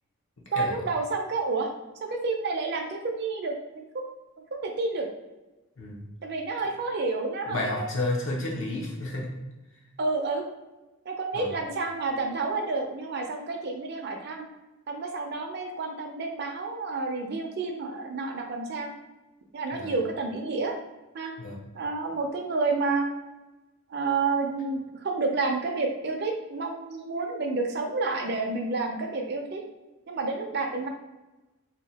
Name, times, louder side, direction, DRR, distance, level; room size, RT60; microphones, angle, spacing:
voice 1, 0.5-1.7 2.1-4.1 4.5-5.1 6.2-7.9 10.0-10.4 11.1-14.5 14.9-18.9 19.5-20.7 21.1-21.3 21.7-23.1 23.9-29.6 30.1-30.9, right 3 dB, 50° right, 2 dB, 0.5 m, -30 dB
voice 2, 7.5-9.3 11.3-11.5 19.7-19.9 21.4-21.6, left 2 dB, 65° left, -2 dB, 0.8 m, -31 dB
2.8 x 2.3 x 4.0 m, 1.1 s
head